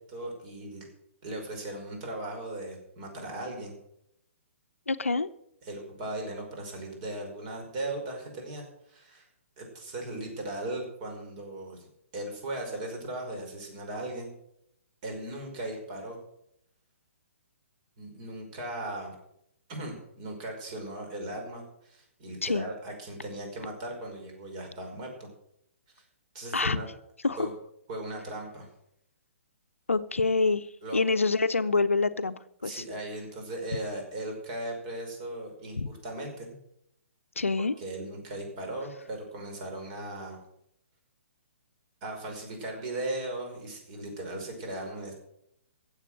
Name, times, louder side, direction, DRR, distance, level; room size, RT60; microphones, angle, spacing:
voice 1, 0.1-0.9 1.2-3.7 5.6-9.3 9.6-11.9 12.1-14.3 15.0-16.2 18.0-19.2 19.7-25.3 26.0-26.1 26.3-26.9 27.4-27.5 27.9-28.7 30.8-31.0 32.6-36.5 37.8-40.4 42.0-45.1, right 1 dB, 35° right, 2 dB, 5.4 m, -38 dB
voice 2, 4.9-5.3 22.4-22.7 26.5-26.8 27.2-27.4 29.9-30.7 30.9-32.8 35.8-35.9 37.4-37.7, left 3 dB, 75° left, 13 dB, 0.8 m, -26 dB
15.5 x 8.1 x 7.7 m, 0.76 s
figure-of-eight pair, 125°, 7 cm